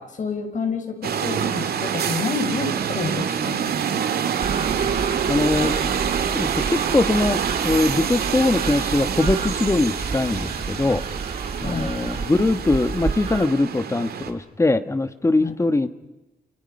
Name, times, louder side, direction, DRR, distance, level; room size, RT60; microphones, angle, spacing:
voice 1, 0.0-4.1 11.6-11.9 15.4-15.6, left 4 dB, 55° left, 5 dB, 5.7 m, -29 dB
sound 1, 1.0-14.3, right 8 dB, 80° right, 2.4 m, -26 dB
sound 2, 4.4-13.5, right 4 dB, 40° right, 1.5 m, -31 dB
voice 2, 5.3-5.7 6.3-11.0 11.6-15.9, left 2 dB, 20° left, 11 dB, 1.6 m, -22 dB
29.5 x 29.0 x 5.6 m, 1.0 s
wide cardioid pair, 120°, 16 cm